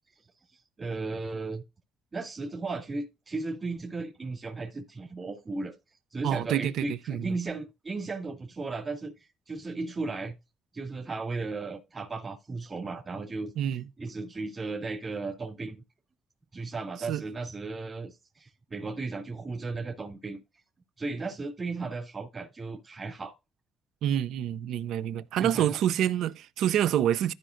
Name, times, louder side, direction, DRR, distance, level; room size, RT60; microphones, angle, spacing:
voice 1, 0.8-1.6 2.1-5.7 6.1-9.1 9.5-10.3 10.7-15.8 16.5-20.4 21.0-23.3 25.4-25.8, right 3 dB, 35° right, 2.8 m, -35 dB
voice 2, 6.2-7.3 13.6-13.8 17.1-17.2 24.0-27.3, right 10 dB, 85° right, 0.5 m, -27 dB
14.5 x 5.1 x 2.6 m
cardioid pair, 90°, 0 cm